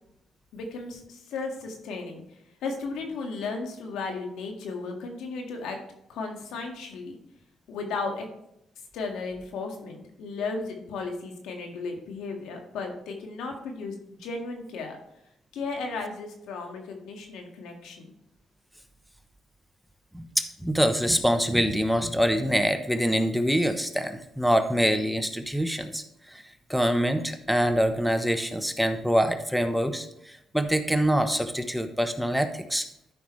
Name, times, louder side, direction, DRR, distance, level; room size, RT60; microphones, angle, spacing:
voice 1, 0.5-2.2 2.6-5.8 6.1-7.1 7.7-8.3 8.9-15.0 15.5-18.1, left 4 dB, 85° left, 3 dB, 1.9 m, -35 dB
voice 2, 20.1-26.4 26.7-32.9, equal, ahead, 7 dB, 1.0 m, -25 dB
13.0 x 5.8 x 3.3 m, 0.79 s
cardioid pair, 90°, 0 cm